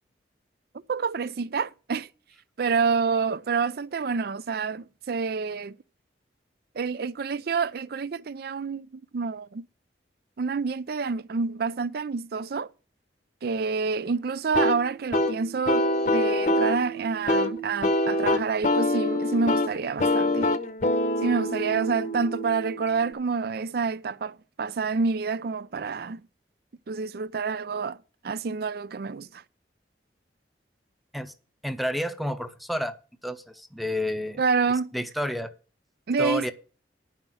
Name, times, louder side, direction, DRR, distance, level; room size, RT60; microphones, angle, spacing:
voice 1, 0.9-2.1 2.6-5.8 6.8-9.7 10.4-12.7 13.4-20.6 21.2-26.3 26.9-28.0 28.2-29.4 34.4-34.9 36.1-36.5, right 5 dB, 60° right, 0.4 m, -28 dB
sound 1, 14.5-23.1, left 1 dB, 45° left, 0.8 m, -25 dB
voice 2, 31.6-32.9 33.2-34.4 34.9-35.5 36.2-36.5, equal, ahead, 0.7 m, -30 dB
9.9 x 5.8 x 7.6 m
head